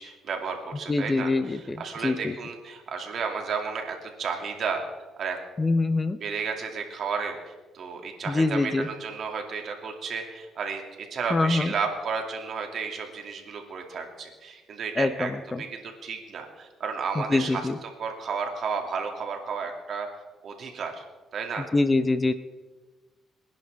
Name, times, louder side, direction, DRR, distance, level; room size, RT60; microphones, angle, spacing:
voice 1, 0.0-4.9 5.2-5.4 6.2-15.3 15.6-20.1 20.4-21.0 21.3-21.7, right 5 dB, 60° right, 3 dB, 2.4 m, -33 dB
voice 2, 0.9-2.3 5.6-6.2 8.3-8.9 11.3-11.7 15.0-15.6 17.2-17.8 21.6-22.3, left 3 dB, 25° left, 12 dB, 0.7 m, -25 dB
24.5 x 10.5 x 3.5 m, 1.3 s
cardioid pair, 90°, 0 cm